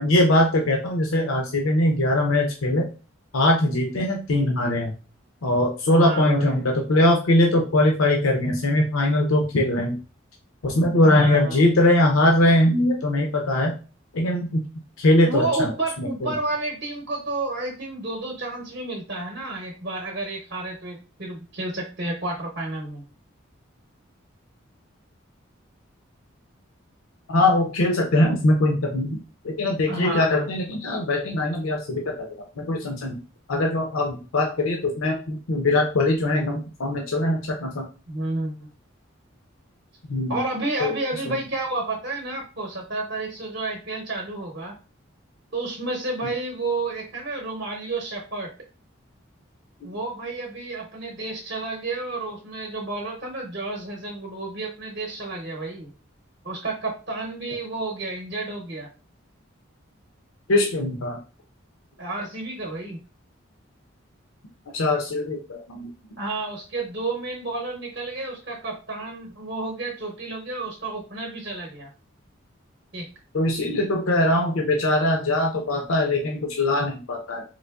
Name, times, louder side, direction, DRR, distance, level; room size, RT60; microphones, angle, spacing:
voice 1, 0.0-2.9 3.3-4.9 5.4-6.6 6.9-10.0 10.6-13.7 14.1-14.6 15.0-15.7 16.0-16.3 27.3-29.2 29.4-32.3 32.6-33.2 33.5-37.9 40.1-40.4 40.8-40.9 41.3-41.4 46.2-46.3 60.5-61.2 64.7-65.9 73.3-77.4, left 1 dB, 90° left, 1 dB, 0.6 m, -21 dB
voice 2, 5.9-6.7 11.0-11.6 15.2-23.0 29.9-30.5 38.1-38.7 40.3-44.7 45.5-48.5 49.8-55.9 56.4-58.9 62.0-63.0 66.2-71.9 72.9-73.0, right 2 dB, 50° right, -1 dB, 0.7 m, -30 dB
3.8 x 2.8 x 2.3 m, 0.34 s
head